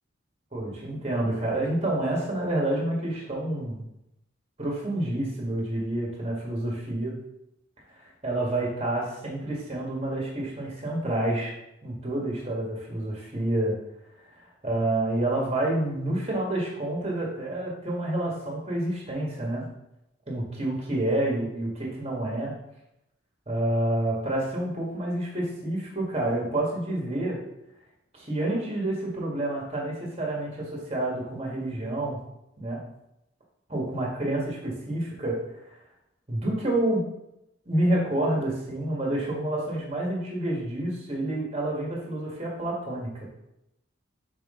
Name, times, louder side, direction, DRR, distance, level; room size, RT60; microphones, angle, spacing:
voice 1, 0.5-3.8 4.6-7.1 8.2-11.5 11.8-13.8 14.3-19.7 20.3-22.6 23.5-27.4 28.1-32.2 32.6-32.8 33.7-35.4 35.7-35.8 36.3-37.1 37.6-43.3, right 1 dB, 30° right, -3 dB, 1.7 m, -28 dB
6.0 x 4.9 x 3.7 m, 0.85 s
head